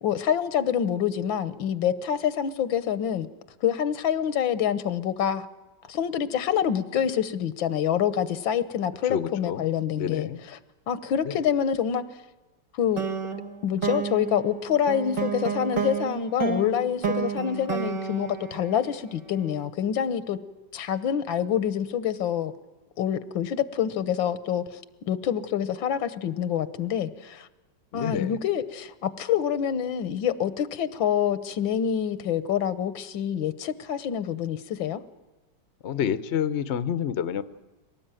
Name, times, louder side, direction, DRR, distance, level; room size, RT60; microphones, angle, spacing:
voice 1, 0.0-3.3 3.6-5.5 5.9-10.6 10.9-12.0 12.7-13.0 13.6-20.4 20.7-22.5 23.0-24.8 25.1-27.5 27.9-35.0, left 9 dB, 85° left, 14 dB, 1.8 m, -26 dB
voice 2, 9.1-9.6 9.9-10.4 11.2-11.4 27.9-28.4 35.8-37.4, left 8 dB, 50° left, 14 dB, 0.9 m, -28 dB
sound 1, 13.0-19.4, right 6 dB, 45° right, 1.6 m, -31 dB
23.5 x 18.5 x 9.0 m, 1.2 s
omnidirectional pair, 2.1 m